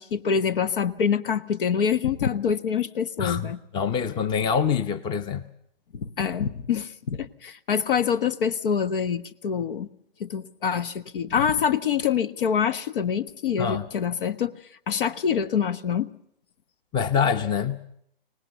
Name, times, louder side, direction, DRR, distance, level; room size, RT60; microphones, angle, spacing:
voice 1, 0.0-3.6 5.9-9.9 10.2-14.5 14.9-16.1, left 7 dB, 65° left, 15 dB, 1.4 m, -25 dB
voice 2, 3.2-5.4 13.6-13.9 16.9-17.8, left 7 dB, 15° left, 14 dB, 0.8 m, -25 dB
23.5 x 19.0 x 6.9 m, 0.69 s
hypercardioid pair, 140°, 29 cm